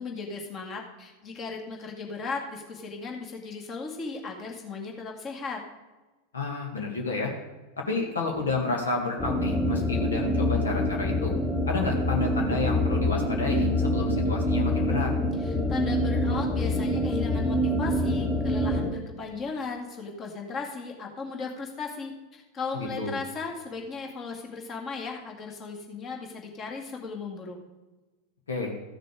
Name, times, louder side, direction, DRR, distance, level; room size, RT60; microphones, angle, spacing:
voice 1, 0.0-5.6 15.4-27.6, left 4 dB, 30° left, 1 dB, 2.1 m, -36 dB
voice 2, 6.3-7.3 7.8-11.3 11.7-15.1 22.7-23.2 28.5-28.7, left 3 dB, 70° left, 1 dB, 1.8 m, -30 dB
sound 1, 9.2-18.9, left 1 dB, 10° left, 1.4 m, -26 dB
14.0 x 6.7 x 4.9 m, 1.2 s
figure-of-eight pair, 90°, 0 cm